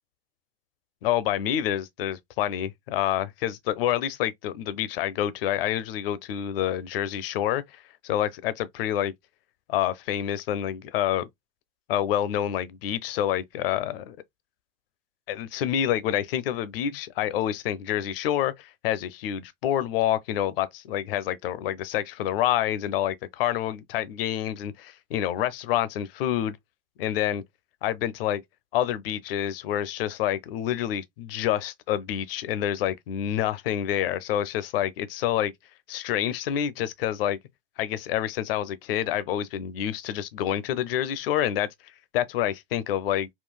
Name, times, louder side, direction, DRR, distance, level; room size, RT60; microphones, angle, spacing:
voice 1, 1.0-9.1 9.7-11.3 11.9-14.2 15.3-26.6 27.0-27.4 27.8-28.4 28.7-35.5 35.9-37.4 37.8-41.7 42.1-43.3, left 11 dB, 75° left, 0.5 m, -27 dB
3.8 x 2.3 x 2.2 m
hypercardioid pair, 90°, 29 cm